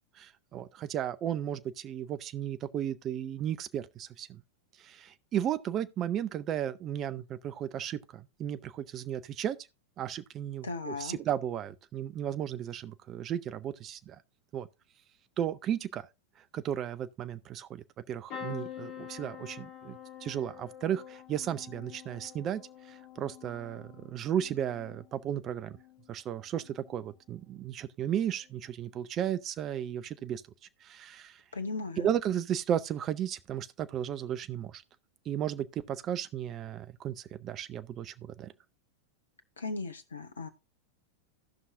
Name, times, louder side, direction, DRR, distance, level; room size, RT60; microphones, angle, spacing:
voice 1, 0.2-4.4 4.8-9.6 10.0-14.2 14.5-14.7 15.4-16.1 16.5-22.6 22.9-25.8 26.1-30.4 30.8-31.4 32.0-34.8 35.3-38.5, right 10 dB, 30° right, 0.5 m, -34 dB
voice 2, 10.6-11.2 31.5-32.1 39.6-40.5, left 3 dB, 70° left, 1.0 m, -37 dB
sound 1, 18.3-26.1 26.6-27.1 28.4-28.6 28.8-28.9, left 9 dB, 40° left, 2.4 m, -47 dB
16.0 x 5.5 x 2.6 m
figure-of-eight pair, 90°, 0 cm